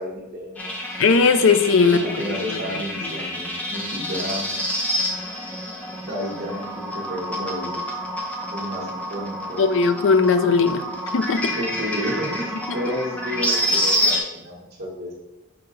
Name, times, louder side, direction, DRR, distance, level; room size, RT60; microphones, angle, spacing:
voice 1, 0.0-1.0 1.8-4.5 6.0-7.8 8.5-9.6 11.5-15.1, equal, 50° right, -3 dB, 1.3 m, -31 dB
sound 1, 0.6-14.2, equal, 5° left, 0.7 m, -28 dB
voice 2, 1.0-2.2 2.5-2.6 9.6-10.8 11.1-11.5, left 4 dB, 65° left, 10 dB, 0.4 m, -18 dB
5.8 x 4.4 x 3.9 m, 0.97 s
head